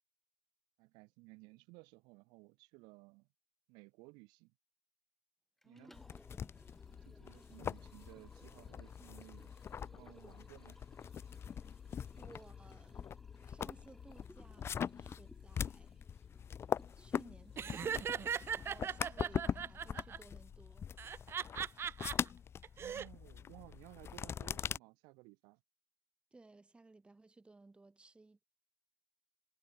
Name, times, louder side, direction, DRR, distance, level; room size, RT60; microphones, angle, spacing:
voice 1, 0.8-3.3 3.7-4.5 5.6-5.9 6.9-9.5 9.8-10.8 22.7-25.6, right 27 dB, 85° right, 1.3 m, -58 dB
Liquid, 5.6-19.7, left 1 dB, 5° left, 2.7 m, -63 dB
voice 2, 5.6-6.0 12.2-13.0 13.4-16.0 17.0-21.0 26.3-28.4, right 3 dB, 15° right, 1.2 m, -60 dB
sound 1, 5.9-24.8, left 8 dB, 35° left, 0.4 m, -42 dB
Laughter, 17.6-20.2 21.0-22.1 22.6-23.1, right 8 dB, 35° right, 0.4 m, -39 dB
cardioid pair, 100°, 7 cm